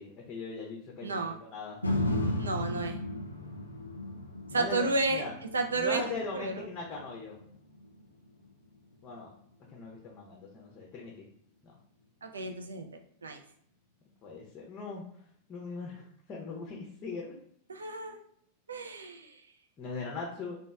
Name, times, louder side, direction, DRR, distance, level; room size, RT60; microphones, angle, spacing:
voice 1, 0.0-1.8 4.5-5.3 5.7-7.4 9.0-9.3 9.7-11.3 11.6-11.7 14.2-15.0 15.5-16.0 16.3-17.3 19.8-20.6, left 4 dB, 30° left, -1 dB, 0.6 m, -40 dB
voice 2, 1.0-1.4 2.4-3.0 4.5-5.2 5.5-6.0 6.3-6.6 12.2-12.9 13.2-13.4 17.7-18.2 18.7-19.3, right 3 dB, 70° right, 5 dB, 0.4 m, -31 dB
sound 1, 1.8-10.0 10.5-10.6, left 1 dB, 85° left, 0.4 m, -36 dB
3.0 x 2.2 x 3.4 m, 0.65 s
figure-of-eight pair, 90°, 0 cm